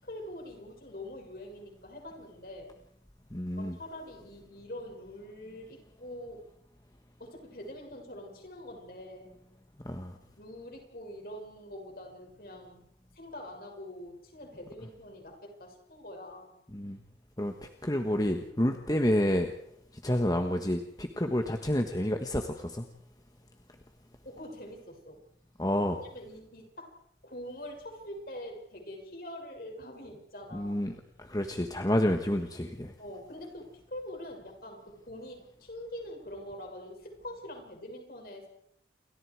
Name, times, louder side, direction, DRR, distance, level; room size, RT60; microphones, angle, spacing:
voice 1, 0.0-2.7 3.6-6.5 7.2-9.3 10.4-12.8 13.1-16.6 20.1-20.3 24.2-25.2 25.9-30.8 33.0-38.5, left 1 dB, 55° left, 2 dB, 6.6 m, -44 dB
voice 2, 3.3-3.7 9.8-10.2 16.7-17.0 17.4-19.5 19.9-22.8 25.6-26.0 30.5-32.9, equal, 20° left, 5 dB, 1.4 m, -29 dB
29.0 x 24.0 x 4.8 m, 0.74 s
head